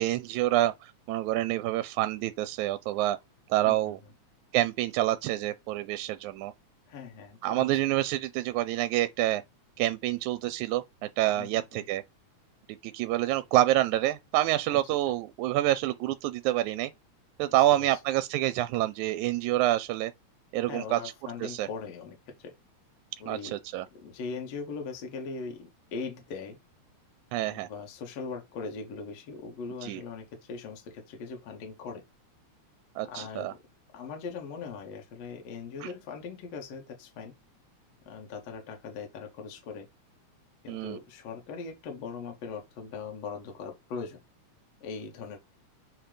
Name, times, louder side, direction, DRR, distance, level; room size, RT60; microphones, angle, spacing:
voice 1, 0.0-3.2 3.5-4.0 4.5-6.5 7.4-9.4 9.8-12.0 12.8-16.9 17.4-20.1 20.5-21.0 21.4-21.7 23.3-23.9 27.3-27.7 29.8-30.0 33.0-33.5 35.8-35.9 40.7-41.0, right 15 dB, 85° right, 1.9 m, -27 dB
voice 2, 3.6-4.0 6.9-7.8 11.3-11.8 14.7-14.8 17.5-18.0 20.6-22.5 23.2-23.6 23.9-26.6 27.4-32.0 33.0-33.6 33.9-37.3 38.1-39.9 40.6-44.2 44.8-45.4, left 5 dB, 65° left, 2.3 m, -40 dB
7.4 x 2.9 x 5.0 m
omnidirectional pair, 3.4 m